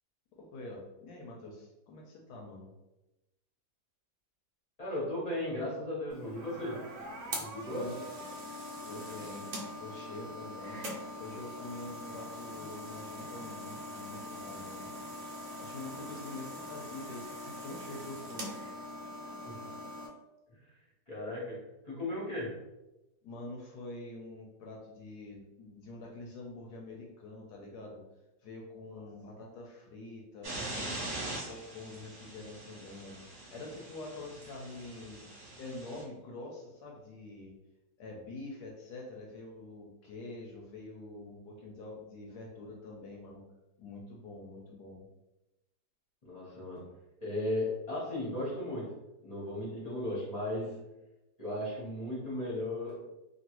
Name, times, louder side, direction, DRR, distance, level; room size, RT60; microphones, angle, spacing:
voice 1, 0.3-2.7 7.7-8.1 8.8-9.5 9.8-10.8 11.2-14.9 15.6-18.5 23.2-28.0 28.4-31.1 31.4-35.3 35.6-37.5 38.0-43.4 43.8-45.1, left 2 dB, 70° left, -1 dB, 1.0 m, -46 dB
voice 2, 4.8-6.8 7.4-7.9 19.4-19.7 20.5-20.6 21.1-21.6 21.8-22.6 46.2-46.9 47.2-48.9 49.2-50.8 51.4-53.0, left 1 dB, 35° left, -6 dB, 0.6 m, -36 dB
sound 1, 6.1-20.1, equal, 75° right, 0.7 m, -42 dB
sound 2, 30.4-36.0, right 1 dB, 50° right, 1.1 m, -42 dB
3.0 x 2.4 x 2.9 m, 0.97 s
omnidirectional pair, 2.0 m